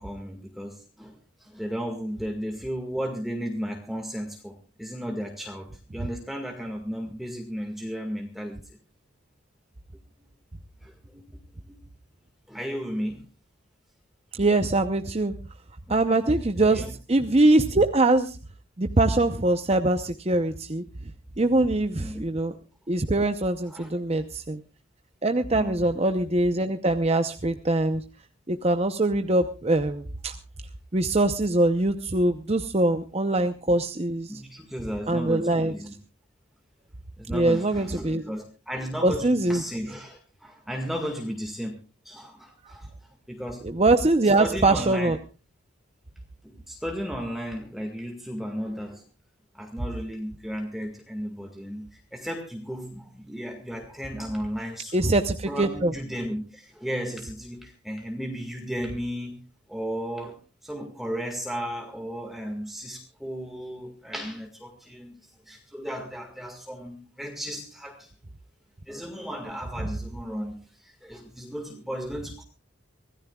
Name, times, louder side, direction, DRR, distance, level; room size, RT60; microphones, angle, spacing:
voice 1, 0.0-8.8 10.8-11.2 11.7-11.8 12.5-13.2 15.9-16.0 16.6-16.9 22.0-22.2 23.7-23.9 25.5-25.9 34.3-35.9 37.2-41.8 42.0-42.9 43.3-43.6 44.4-45.1 46.4-49.0 49.5-55.2 55.5-59.4 59.7-68.1 68.9-72.4, equal, ahead, 2 dB, 1.9 m, -34 dB
voice 2, 14.3-15.3 15.9-18.4 18.8-20.8 21.4-22.5 22.9-24.6 25.2-28.0 28.5-30.3 30.9-34.3 35.1-35.7 37.3-38.2 39.0-39.6 43.6-45.2 54.9-55.9, right 2 dB, 30° right, 7 dB, 0.8 m, -23 dB
24.5 x 17.0 x 2.4 m, 0.33 s
head